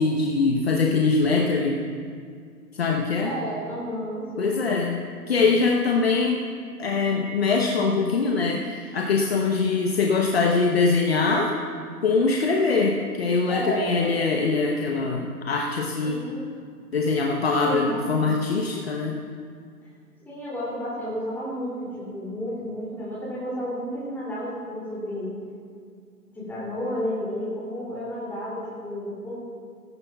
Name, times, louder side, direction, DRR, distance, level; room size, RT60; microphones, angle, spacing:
voice 1, 0.0-1.8 2.7-3.3 4.4-6.4 6.8-11.5 12.0-16.2 16.9-19.2, left 4 dB, 40° left, 0 dB, 1.0 m, -23 dB
voice 2, 3.2-4.7 13.5-13.9 16.0-16.5 17.6-18.2 20.3-25.3 26.3-29.3, equal, 5° left, -8 dB, 2.9 m, -32 dB
17.5 x 14.0 x 2.4 m, 2.2 s
figure-of-eight pair, 150°, 49 cm